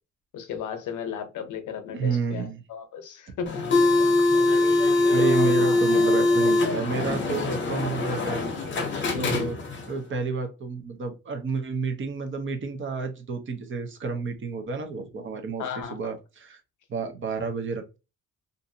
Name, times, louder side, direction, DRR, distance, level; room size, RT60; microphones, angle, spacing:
voice 1, 0.3-3.6 5.3-5.8 9.1-9.5 15.6-16.1, left 7 dB, 70° left, 0.7 m, -35 dB
voice 2, 1.9-2.6 5.1-8.4 9.2-9.6 9.9-16.6 16.9-18.0, right 4 dB, 40° right, 0.7 m, -30 dB
sound 1, 3.5-9.9, left 2 dB, 35° left, 0.7 m, -22 dB
2.6 x 2.5 x 2.6 m
cardioid pair, 140°, 31 cm